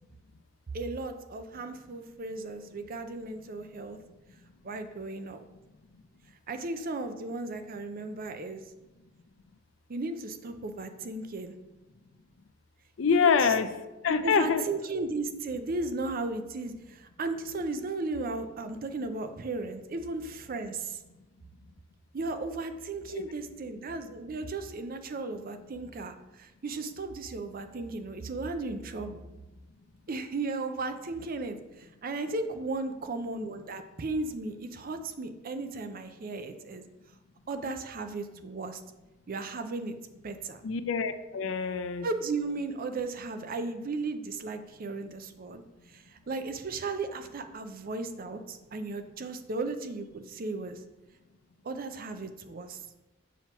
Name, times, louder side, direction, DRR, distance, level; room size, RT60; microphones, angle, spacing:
voice 1, 0.7-4.0 4.6-5.4 6.5-8.6 9.9-11.5 13.1-13.5 14.1-21.0 22.1-29.3 30.1-36.8 37.5-38.8 39.3-39.9 40.2-40.6 42.0-50.8 51.6-52.8, right 3 dB, 50° right, 8 dB, 0.5 m, -35 dB
voice 2, 13.0-13.7 14.0-14.6 23.1-23.2 40.6-42.1, left 6 dB, 75° left, 10 dB, 0.5 m, -25 dB
7.1 x 2.9 x 5.7 m, 1.0 s
head